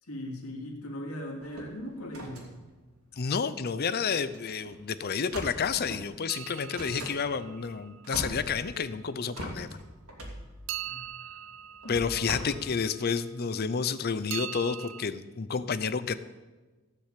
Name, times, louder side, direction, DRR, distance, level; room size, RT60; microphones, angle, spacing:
voice 1, 0.0-2.5 10.8-11.4 11.8-12.2, left 1 dB, 80° left, 0 dB, 2.9 m, -40 dB
sound 1, 1.4-3.8 4.2-4.4 4.6-4.8 5.3-6.1 6.7-7.2 7.7-7.8 8.0-8.9 9.3-12.4, right 1 dB, 80° right, 2.8 m, -41 dB
voice 2, 3.2-9.7 11.9-16.2, left 6 dB, 45° left, 14 dB, 0.5 m, -30 dB
sound 2, 6.3-8.3 10.7-13.1 14.3-15.0, right 11 dB, 60° right, 0.5 m, -41 dB
15.5 x 6.6 x 8.3 m, 1.3 s
head